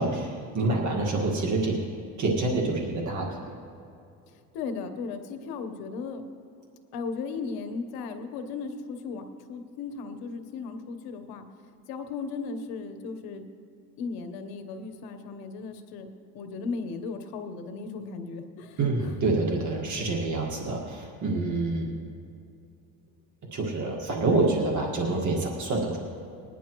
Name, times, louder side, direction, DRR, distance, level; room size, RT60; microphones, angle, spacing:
voice 1, 0.0-1.8 2.2-3.6 18.8-21.9 23.5-26.0, right 2 dB, 55° right, -1 dB, 1.8 m, -27 dB
voice 2, 4.3-6.2 6.9-11.4 11.9-13.5 14.0-16.1 16.3-19.1 20.0-20.1 24.1-24.2, left 4 dB, 90° left, 8 dB, 1.1 m, -36 dB
21.0 x 10.0 x 3.1 m, 2.6 s
cardioid pair, 110°, 36 cm